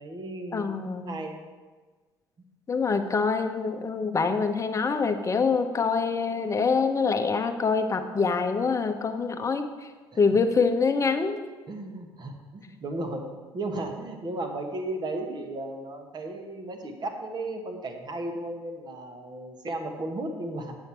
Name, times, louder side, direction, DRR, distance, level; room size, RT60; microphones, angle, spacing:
voice 1, 0.0-1.4 11.7-13.3 13.5-20.8, right 2 dB, 35° right, 4 dB, 1.4 m, -35 dB
voice 2, 0.5-1.2 2.7-9.9 10.2-11.4, left 4 dB, 25° left, 6 dB, 0.9 m, -25 dB
8.2 x 8.1 x 4.5 m, 1.3 s
figure-of-eight pair, 60°, 13 cm